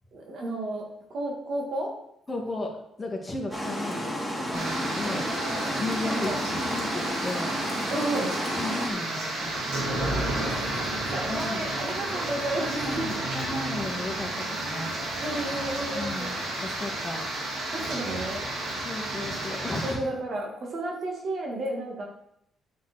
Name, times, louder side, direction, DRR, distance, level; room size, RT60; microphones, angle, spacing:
voice 1, 0.1-0.8 1.1-1.9 5.1-6.4 7.9-8.3 10.1-10.5 11.1-13.2 15.2-16.3 17.7-18.5 19.8-22.0, right 1 dB, 60° right, 0 dB, 2.3 m, -32 dB
voice 2, 2.3-5.3 5.8-7.6 8.2-9.5 11.3-11.7 12.1-12.3 12.6-14.9 15.9-17.3 18.8-20.0, left 2 dB, 20° left, -1 dB, 2.4 m, -35 dB
Water, 3.5-8.9, equal, 5° right, 3.6 m, -32 dB
sound 1, 4.5-19.9, right 1 dB, 90° right, 3.9 m, -31 dB
9.3 x 6.5 x 4.6 m, 0.78 s
cardioid pair, 90°, 0 cm